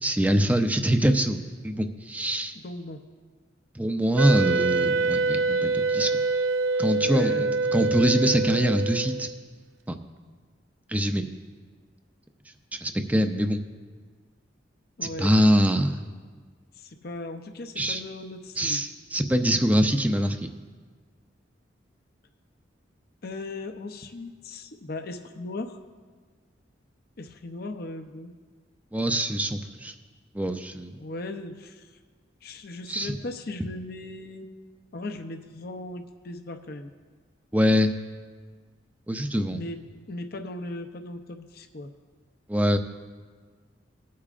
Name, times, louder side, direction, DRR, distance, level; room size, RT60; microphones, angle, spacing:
voice 1, 0.0-2.5 3.8-6.2 6.8-9.3 9.9-10.0 10.9-11.3 12.7-13.6 15.0-16.0 17.8-18.0 18.6-20.5 28.9-29.9 30.3-30.9 32.9-33.1 37.5-37.9 39.1-39.6 42.5-42.8, equal, 10° right, 7 dB, 0.5 m, -24 dB
voice 2, 2.6-3.0 7.0-7.6 15.0-15.3 16.8-18.8 23.2-25.8 27.2-28.3 31.0-31.9 32.4-34.5 34.9-36.9 39.5-39.8 40.1-41.9, left 2 dB, 55° left, 6 dB, 0.6 m, -37 dB
Wind instrument woodwind instrument, 4.2-9.4, right 3 dB, 75° right, 0.4 m, -25 dB
19.5 x 8.5 x 2.5 m, 1.5 s
head